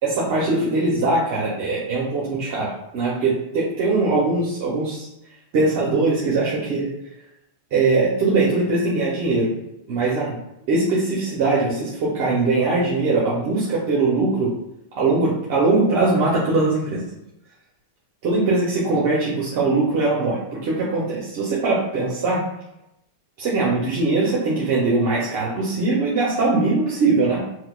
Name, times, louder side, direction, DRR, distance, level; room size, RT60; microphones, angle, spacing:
voice 1, 0.0-5.1 5.5-6.9 7.7-9.5 9.9-10.4 10.7-14.5 14.9-17.0 18.2-22.4 23.4-27.4, right 3 dB, 55° right, -5 dB, 0.8 m, -21 dB
4.3 x 2.2 x 2.4 m, 0.84 s
supercardioid pair, 140°, 0 cm